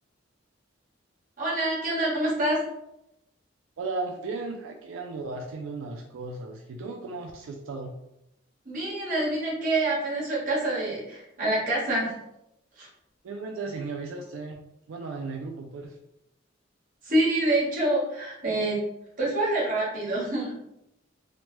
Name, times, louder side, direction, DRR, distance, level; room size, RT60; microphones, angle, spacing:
voice 1, 1.4-2.6 8.6-12.1 12.8-12.9 17.0-18.8 19.2-20.5, right 1 dB, 45° right, -7 dB, 1.2 m, -26 dB
voice 2, 3.8-7.9 13.2-14.6 14.9-16.0, right 3 dB, 90° right, 2 dB, 0.4 m, -35 dB
3.2 x 2.1 x 3.0 m, 0.85 s
head